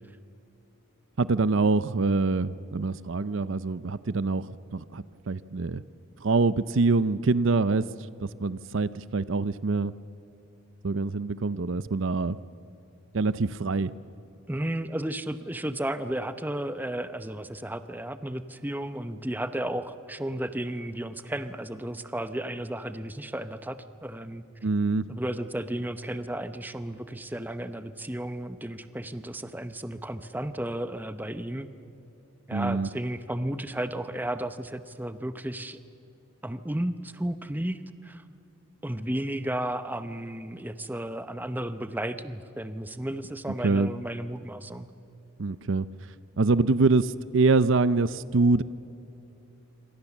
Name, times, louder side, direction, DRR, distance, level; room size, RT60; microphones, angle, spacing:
voice 1, 1.2-5.8 6.2-7.8 8.2-9.9 10.8-12.4 13.1-13.9 24.6-25.0 32.5-32.9 43.6-43.9 45.4-45.9 46.4-48.6, right 3 dB, 60° right, 16 dB, 0.6 m, -25 dB
voice 2, 14.5-24.4 25.1-31.7 32.5-35.8 36.4-38.2 38.8-44.9, right 1 dB, 10° right, 10 dB, 0.8 m, -33 dB
28.0 x 26.0 x 7.3 m, 2.9 s
head